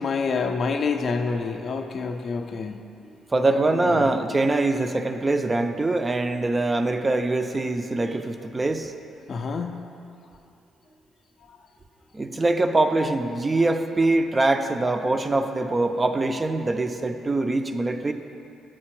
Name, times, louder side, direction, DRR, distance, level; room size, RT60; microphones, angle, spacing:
voice 1, 0.0-2.8 3.5-4.1 9.3-9.8, left 4 dB, 50° left, 5 dB, 0.4 m, -28 dB
voice 2, 3.3-8.9 12.1-18.1, right 2 dB, 25° right, 7 dB, 0.4 m, -23 dB
7.5 x 4.5 x 4.5 m, 2.6 s
cardioid pair, 90°, 0 cm